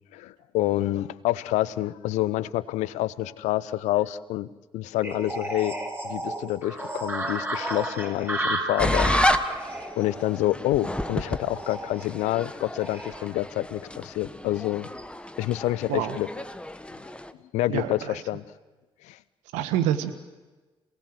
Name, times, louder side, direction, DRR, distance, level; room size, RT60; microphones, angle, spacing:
voice 1, 0.1-4.5 4.7-5.7 6.0-9.6 10.0-14.9 15.4-16.3 17.5-18.4 19.0-19.2, left 15 dB, 75° left, 18 dB, 0.8 m, -27 dB
sound 1, 5.0-13.3, right 1 dB, 15° right, 6.2 m, -32 dB
sound 2, 8.8-17.3, left 1 dB, 10° left, 1.5 m, -31 dB
voice 2, 17.7-18.2 19.5-20.1, right 11 dB, 75° right, 9 dB, 1.5 m, -27 dB
28.0 x 19.0 x 7.9 m, 1.2 s
hypercardioid pair, 45°, 12 cm